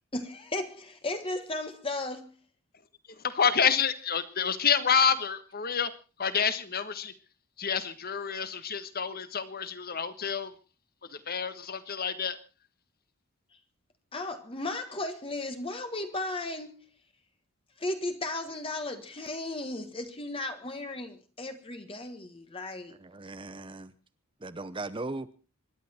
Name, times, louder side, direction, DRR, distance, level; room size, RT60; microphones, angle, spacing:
voice 1, 0.1-2.3 14.1-16.8 17.8-22.9, left 2 dB, 25° left, 1.5 m, -35 dB
voice 2, 3.2-5.9 6.2-7.1 7.6-10.5 11.1-12.4, left 6 dB, 45° left, 1.4 m, -28 dB
voice 3, 23.0-23.9 24.4-25.3, right 2 dB, 25° right, 0.8 m, -38 dB
25.5 x 11.0 x 4.4 m
head